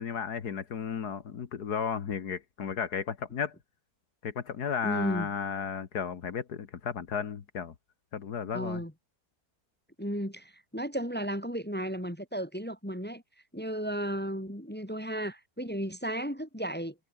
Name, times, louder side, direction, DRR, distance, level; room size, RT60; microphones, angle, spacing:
voice 1, 0.0-3.6 4.2-7.7 8.1-8.8, left 7 dB, 80° left, 2.1 m, -34 dB
voice 2, 4.8-5.3 8.5-8.9 10.0-13.2 13.5-16.9, equal, 5° left, 2.8 m, -34 dB
omnidirectional pair, 1.7 m